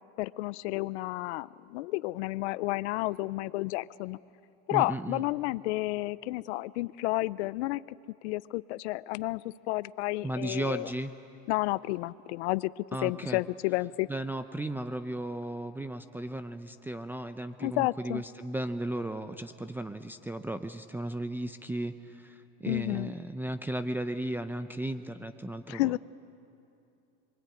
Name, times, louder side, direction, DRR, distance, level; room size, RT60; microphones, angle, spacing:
voice 1, 0.2-4.2 4.7-8.0 8.2-10.9 11.5-14.1 17.6-18.2 22.7-23.1 25.7-26.0, left 19 dB, 80° left, 18 dB, 0.6 m, -31 dB
voice 2, 4.7-5.3 10.2-11.1 12.9-26.0, right 1 dB, 5° right, 6 dB, 0.6 m, -35 dB
25.5 x 23.5 x 9.1 m, 2.7 s
supercardioid pair, 120°, 34 cm